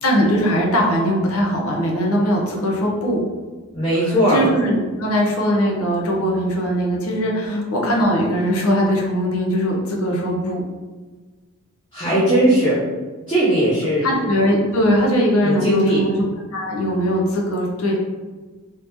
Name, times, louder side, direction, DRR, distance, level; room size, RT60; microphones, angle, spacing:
voice 1, 0.0-3.2 4.0-10.6 14.0-16.2 16.5-18.0, equal, 80° left, -1 dB, 0.8 m, -20 dB
voice 2, 3.7-4.4 7.4-7.6 11.9-12.8 13.3-14.1 15.4-16.0, right 1 dB, 20° left, -11 dB, 0.9 m, -18 dB
3.1 x 2.8 x 3.4 m, 1.3 s
head